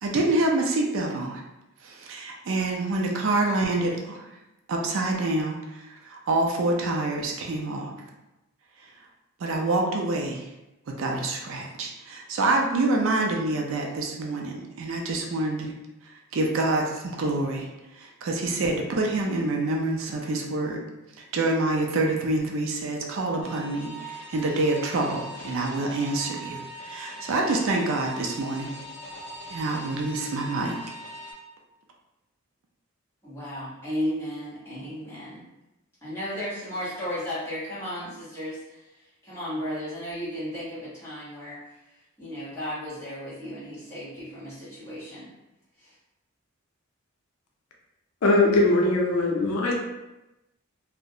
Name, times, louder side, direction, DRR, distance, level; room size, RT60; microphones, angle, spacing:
voice 1, 0.0-1.4 1.8-4.3 4.7-8.0 9.4-10.4 11.0-15.7 16.3-17.7 18.0-20.8 21.2-28.7 29.5-30.8, right 2 dB, 60° right, 1 dB, 0.4 m, -27 dB
sound 1, 23.4-31.3, equal, 35° left, 0.7 m, -41 dB
voice 2, 33.2-35.4 36.0-38.9 39.2-41.8 42.2-45.3 45.8-45.9, equal, 10° left, -11 dB, 1.1 m, -34 dB
voice 3, 48.2-49.7, left 2 dB, 80° left, 0 dB, 0.5 m, -21 dB
2.3 x 2.1 x 2.7 m, 0.97 s
head